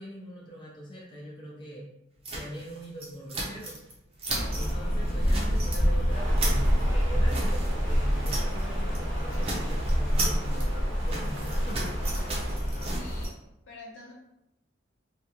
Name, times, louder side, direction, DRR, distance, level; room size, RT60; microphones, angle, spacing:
voice 1, 0.0-1.9 2.3-3.8 4.5-11.8, right 1 dB, 25° left, -4 dB, 0.4 m, -42 dB
sound 1, 2.2-3.9 4.2-4.7 5.1-5.8 6.1-8.6 8.9-9.1 9.3-13.3, right 2 dB, 30° right, 0.5 m, -36 dB
Rain, 4.3-13.3, equal, 45° left, 0.8 m, -27 dB
sound 2, 6.1-12.6, right 2 dB, 85° right, 0.6 m, -43 dB
voice 2, 12.9-13.4 13.7-14.1, left 2 dB, 85° left, -3 dB, 0.7 m, -46 dB
2.4 x 2.2 x 2.8 m, 0.86 s
head